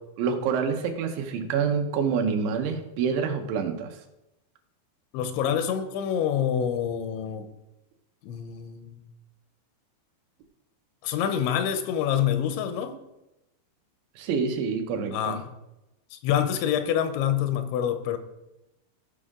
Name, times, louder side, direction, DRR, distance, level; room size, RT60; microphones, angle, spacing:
voice 1, 0.2-3.9 14.2-15.4, right 6 dB, 90° right, 4 dB, 3.4 m, -27 dB
voice 2, 5.1-7.5 8.2-9.0 11.0-13.0 15.1-15.5 16.1-18.2, left 9 dB, 90° left, 9 dB, 3.1 m, -26 dB
15.5 x 5.3 x 3.7 m, 0.93 s
omnidirectional pair, 5.1 m